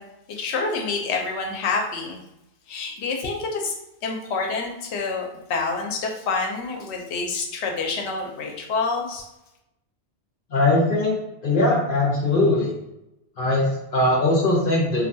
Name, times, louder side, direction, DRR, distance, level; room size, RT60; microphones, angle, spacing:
voice 1, 0.3-2.2 2.7-3.7 4.0-5.2 5.5-9.2, left 4 dB, 85° left, 1 dB, 0.9 m, -27 dB
voice 2, 10.5-11.2 11.4-12.7 13.4-15.1, left 2 dB, 55° left, -4 dB, 0.8 m, -20 dB
2.5 x 2.2 x 2.6 m, 0.90 s
omnidirectional pair, 1.1 m